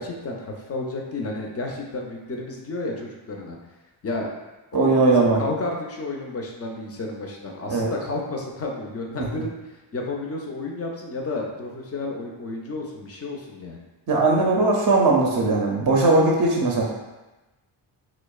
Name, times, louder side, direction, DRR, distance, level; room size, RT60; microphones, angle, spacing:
voice 1, 0.0-3.6 4.0-4.3 4.7-9.5 9.9-13.8, left 2 dB, 30° left, 0 dB, 0.4 m, -31 dB
voice 2, 4.7-5.4 7.7-7.9 14.1-16.8, right 3 dB, 40° right, -1 dB, 0.5 m, -19 dB
2.7 x 2.0 x 2.3 m, 1.1 s
cardioid pair, 60°, 49 cm